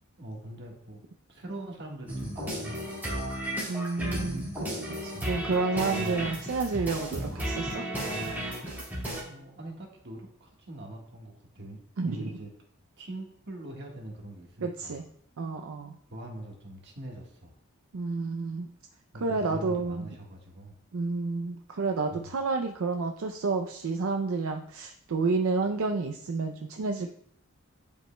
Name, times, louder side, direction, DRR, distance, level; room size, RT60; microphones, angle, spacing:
voice 1, 0.2-1.0 1.3-3.6 5.1-5.4 9.2-12.5 13.0-15.1 16.1-17.5 19.1-20.8 22.1-22.3, right 1 dB, 55° right, 0 dB, 1.5 m, -43 dB
sound 1, 2.1-9.2, right 1 dB, 10° right, 2.0 m, -34 dB
voice 2, 3.7-7.8 12.0-12.2 14.6-15.0 15.4-16.0 17.9-18.7 19.2-20.0 20.9-27.1, right 3 dB, 75° right, 4 dB, 0.5 m, -30 dB
10.5 x 5.2 x 2.2 m, 0.68 s
head